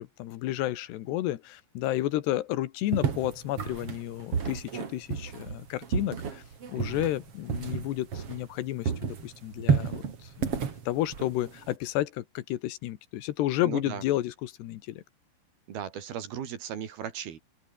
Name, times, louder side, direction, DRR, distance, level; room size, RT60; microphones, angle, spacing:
voice 1, 0.0-6.4 6.7-15.0, left 14 dB, 80° left, 3.3 m, -31 dB
sound 1, 2.9-8.6 8.8-11.8, right 6 dB, 40° right, 3.2 m, -31 dB
voice 2, 6.8-7.1 13.6-14.0 15.7-17.4, right 9 dB, 65° right, 4.4 m, -37 dB
open air
omnidirectional pair, 4.8 m